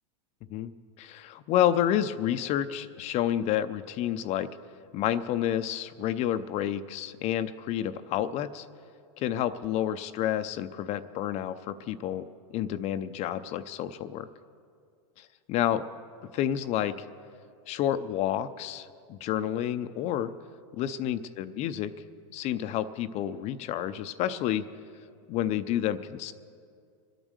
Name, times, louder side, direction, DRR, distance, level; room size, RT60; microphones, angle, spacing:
voice 1, 1.0-4.5 4.9-8.7 9.2-12.3 12.5-14.3 15.2-15.8 16.3-17.1 17.7-20.3 20.7-21.9 22.3-24.6 25.3-26.3, left 11 dB, 40° left, 12 dB, 0.6 m, -29 dB
24.5 x 9.0 x 6.5 m, 2.2 s
supercardioid pair, 125°, 17 cm